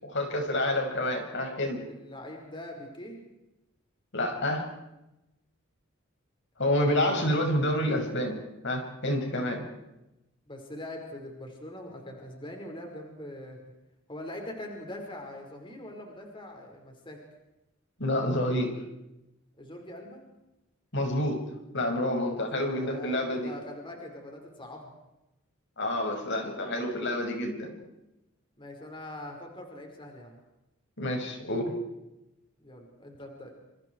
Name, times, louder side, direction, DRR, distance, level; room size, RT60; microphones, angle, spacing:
voice 1, 0.0-1.8 4.1-4.7 6.6-8.4 8.6-9.6 18.0-18.7 20.9-21.4 21.7-23.5 25.8-27.7 31.0-31.7, left 1 dB, 60° left, 3 dB, 6.5 m, -28 dB
voice 2, 1.8-3.2 6.7-7.2 10.5-13.6 14.1-17.2 19.6-20.2 22.4-24.9 28.6-30.3 32.6-33.5, left 1 dB, 25° left, 2 dB, 5.3 m, -43 dB
29.0 x 28.5 x 4.8 m, 0.92 s
head